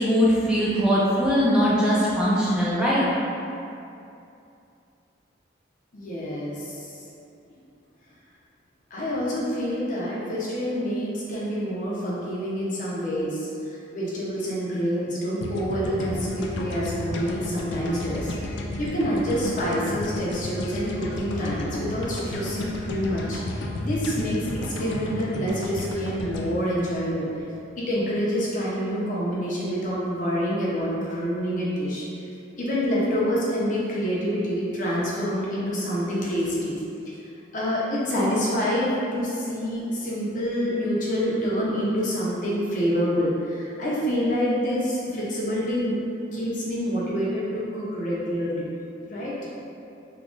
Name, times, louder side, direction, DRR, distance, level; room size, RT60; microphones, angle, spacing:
voice 1, 0.1-3.0, equal, 5° right, -9 dB, 0.4 m, -21 dB
voice 2, 5.9-6.9 8.9-18.3 18.8-27.3 27.8-32.1 32.6-36.7 37.5-45.9 46.3-48.6 49.0-49.3, equal, 45° left, -7 dB, 0.7 m, -27 dB
sound 1, 15.4-27.6, left 1 dB, 75° left, 0.4 m, -32 dB
2.9 x 2.5 x 3.6 m, 2.6 s
head